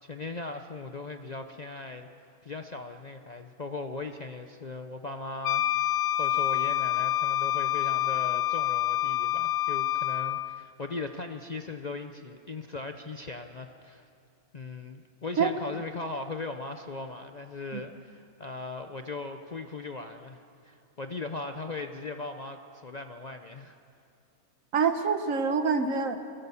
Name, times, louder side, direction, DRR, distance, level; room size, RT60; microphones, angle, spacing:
voice 1, 0.0-2.1 2.4-5.9 6.1-14.0 14.5-23.8, left 3 dB, 40° left, 6 dB, 0.6 m, -38 dB
Wind instrument woodwind instrument, 5.4-10.6, left 13 dB, 65° left, 0.9 m, -27 dB
voice 2, 24.7-26.2, right 5 dB, 65° right, 8 dB, 1.5 m, -26 dB
23.5 x 16.5 x 7.0 m, 2.7 s
omnidirectional pair, 1.5 m